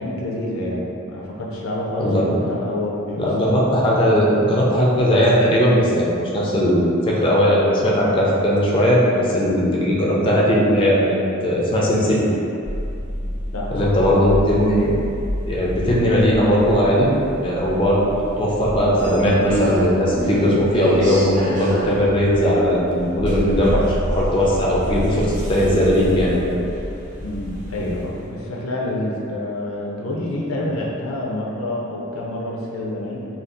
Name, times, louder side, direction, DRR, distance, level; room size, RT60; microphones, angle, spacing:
voice 1, 0.0-3.3 13.2-13.8 14.1-14.2 27.2-33.3, left 1 dB, 80° left, -3 dB, 0.5 m, -28 dB
voice 2, 2.0-2.5 3.2-11.2 11.4-12.2 13.7-14.9 15.5-17.1 17.4-26.5 30.6-30.7, equal, 25° left, -5 dB, 0.4 m, -18 dB
sound 1, 12.6-28.3, equal, 35° right, 0.7 m, -28 dB
2.6 x 2.3 x 3.5 m, 2.6 s
head